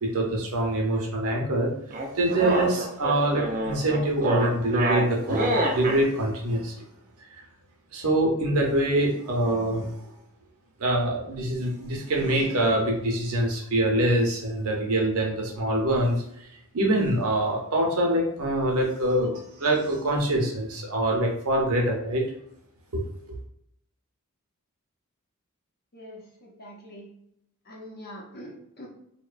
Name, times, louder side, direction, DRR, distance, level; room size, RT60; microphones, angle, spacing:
voice 1, 0.0-1.7 2.1-6.7 7.3-7.4 7.9-9.9 10.8-16.2 16.7-19.3 19.6-22.3 22.9-23.0, right 1 dB, 75° right, 0 dB, 0.7 m, -24 dB
sound 1, 1.9-6.0, right 1 dB, 35° right, 0.4 m, -27 dB
voice 2, 25.9-27.1 27.6-28.9, equal, 45° left, -2 dB, 0.7 m, -43 dB
2.7 x 2.1 x 2.4 m, 0.74 s
head